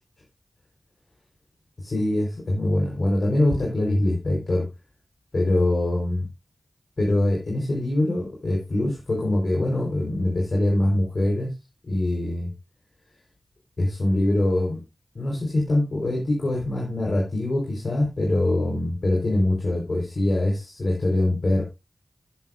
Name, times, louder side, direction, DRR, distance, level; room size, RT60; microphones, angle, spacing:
voice 1, 1.8-4.7 5.3-6.2 7.0-11.5 11.9-12.5 13.8-14.8 15.1-21.6, left 1 dB, 65° left, -2 dB, 4.9 m, -23 dB
13.5 x 9.7 x 2.8 m, 0.26 s
wide cardioid pair, 60°, 0 cm